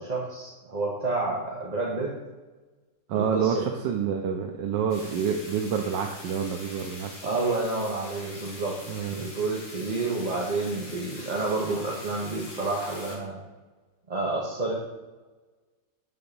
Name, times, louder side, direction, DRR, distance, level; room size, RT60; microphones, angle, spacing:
voice 1, 0.0-2.1 3.1-3.6 7.2-8.8 9.1-13.4 14.1-14.7, right 3 dB, 30° right, -4 dB, 1.0 m, -29 dB
voice 2, 3.1-7.1 8.9-9.3, right 7 dB, 85° right, 3 dB, 1.4 m, -28 dB
sound 1, 4.9-13.2, left 2 dB, 45° left, 2.3 m, -44 dB
9.1 x 3.8 x 6.8 m, 1.2 s
omnidirectional pair, 1.9 m